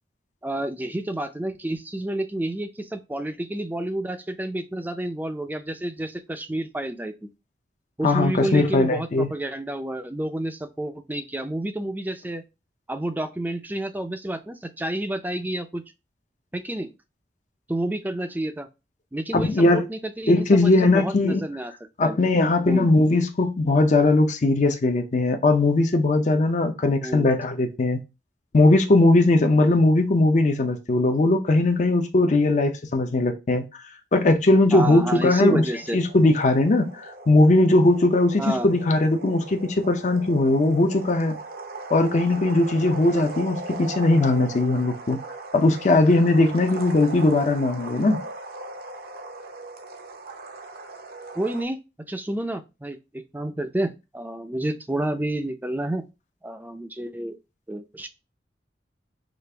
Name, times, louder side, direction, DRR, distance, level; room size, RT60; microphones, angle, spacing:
voice 1, 0.4-7.3 8.0-12.4 12.9-15.8 16.5-16.9 17.7-18.7 19.1-21.7 22.0-22.2 22.7-22.9 27.0-27.3 34.7-36.0 38.4-38.7 51.3-51.8 52.1-56.0 56.4-57.4 57.7-58.1, right 1 dB, 10° right, 0.4 m, -29 dB
voice 2, 8.0-9.3 19.3-19.9 20.3-21.4 22.0-28.0 28.5-33.6 34.1-35.6 35.9-41.4 41.9-45.2 45.5-48.2, left 2 dB, 45° left, 0.5 m, -19 dB
sound 1, 35.3-51.6, right 3 dB, 60° right, 0.6 m, -39 dB
5.0 x 2.4 x 3.3 m
head